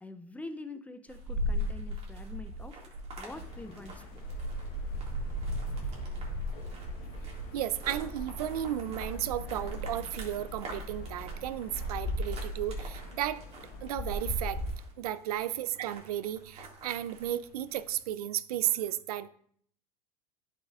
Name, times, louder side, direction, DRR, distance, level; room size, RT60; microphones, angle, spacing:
voice 1, 0.0-4.2, left 2 dB, 10° left, 10 dB, 0.5 m, -45 dB
sound 1, 1.1-18.0, equal, 35° right, 2.1 m, -39 dB
sound 2, 3.3-14.7, equal, 50° left, 1.1 m, -40 dB
voice 2, 7.5-13.4 13.8-14.6 15.0-19.3, right 12 dB, 90° right, 15 dB, 0.4 m, -34 dB
10.0 x 5.6 x 2.4 m, 0.62 s
hypercardioid pair, 100°, 19 cm